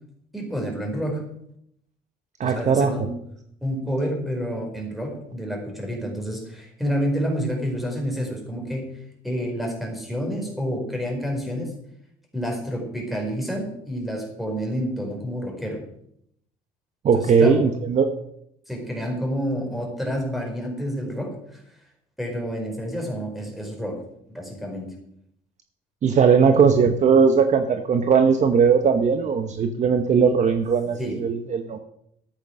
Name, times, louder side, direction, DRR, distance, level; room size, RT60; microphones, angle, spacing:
voice 1, 0.3-1.2 2.4-3.1 3.6-8.9 9.2-11.7 12.3-15.8 17.1-17.6 18.7-21.6 22.2-24.0 24.3-24.9 31.0-31.2, equal, ahead, 1 dB, 4.7 m, -29 dB
voice 2, 2.4-2.9 17.0-18.1 26.0-31.8, right 6 dB, 45° right, 7 dB, 1.0 m, -19 dB
13.5 x 8.1 x 6.3 m, 0.73 s
cardioid pair, 110°, 17 cm